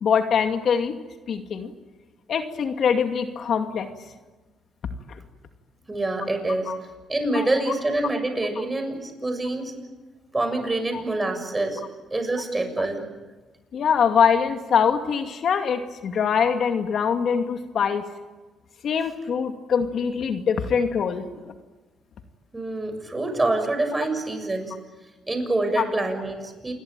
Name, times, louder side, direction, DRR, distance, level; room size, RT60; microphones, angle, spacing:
voice 1, 0.0-0.9 1.3-1.7 2.3-3.9 6.7-6.8 7.3-7.5 8.6-8.7 10.9-11.0 13.7-18.0 18.8-21.3 25.8-25.9, left 7 dB, 60° left, 5 dB, 2.3 m, -23 dB
voice 2, 5.9-6.7 7.1-9.7 10.3-11.8 12.1-13.1 22.5-24.7 25.3-26.7, right 2 dB, 20° right, 6 dB, 7.1 m, -26 dB
28.5 x 22.0 x 9.1 m, 1.2 s
cardioid pair, 90°, 0 cm